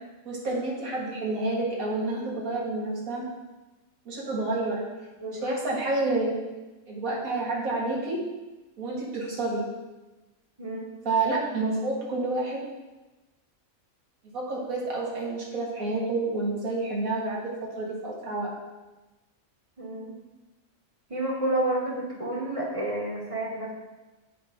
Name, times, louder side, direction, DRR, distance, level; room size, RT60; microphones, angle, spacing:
voice 1, 0.3-3.3 4.1-4.8 5.3-6.3 6.9-8.2 8.8-9.6 11.0-12.6 14.3-18.5, right 2 dB, 80° right, -3 dB, 1.9 m, -29 dB
voice 2, 5.2-5.6 10.6-10.9 19.8-20.1 21.1-23.7, right 1 dB, 25° right, -4 dB, 1.3 m, -30 dB
7.3 x 4.8 x 3.6 m, 1.1 s
omnidirectional pair, 1.4 m